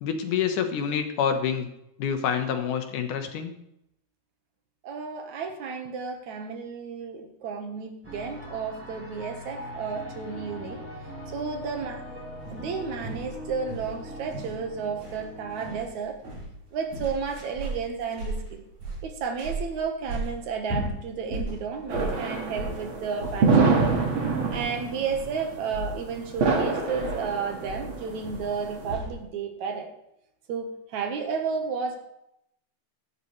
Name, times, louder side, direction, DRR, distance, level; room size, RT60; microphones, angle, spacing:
voice 1, 0.0-1.7 2.0-3.5, left 7 dB, 80° left, 6 dB, 2.9 m, -27 dB
voice 2, 4.8-10.8 11.3-12.0 12.5-16.2 16.7-18.6 19.0-24.0 24.5-29.9 30.5-32.0, right 5 dB, 70° right, 5 dB, 2.7 m, -32 dB
sound 1, 8.0-15.8, equal, 5° right, 2.2 m, -41 dB
sound 2, 12.4-29.2, right 1 dB, 85° right, 7.0 m, -37 dB
sound 3, 21.9-28.9, right 4 dB, 45° right, 2.4 m, -26 dB
15.5 x 13.0 x 3.3 m, 0.80 s
omnidirectional pair, 3.5 m